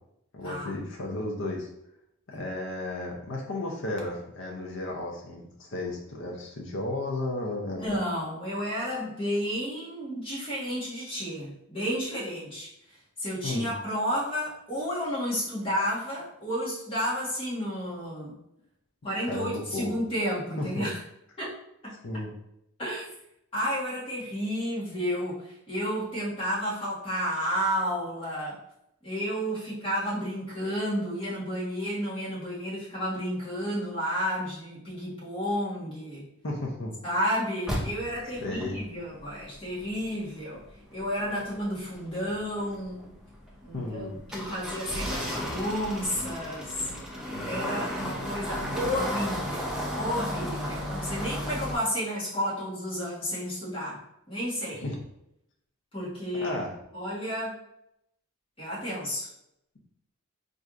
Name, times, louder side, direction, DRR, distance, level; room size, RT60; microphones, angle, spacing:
voice 1, 0.3-1.7 2.3-7.9 13.4-13.7 19.2-20.0 20.6-20.9 22.0-22.3 36.4-36.9 38.4-38.8 43.7-44.1 54.7-55.0 56.3-56.7, left 2 dB, 55° left, -1 dB, 0.6 m, -34 dB
voice 2, 7.8-12.7 13.2-18.3 19.0-21.0 21.4-21.5 21.8-21.9 22.8-23.1 23.5-28.6 29.0-36.2 37.0-40.6 40.9-43.1 43.6-46.9 47.4-54.0 54.3-54.8 55.9-56.6 56.9-57.5 58.6-59.3, equal, 25° left, -8 dB, 1.3 m, -31 dB
sound 1, 37.7-51.7, equal, 5° right, 0.4 m, -35 dB
4.4 x 2.6 x 2.4 m, 0.79 s
head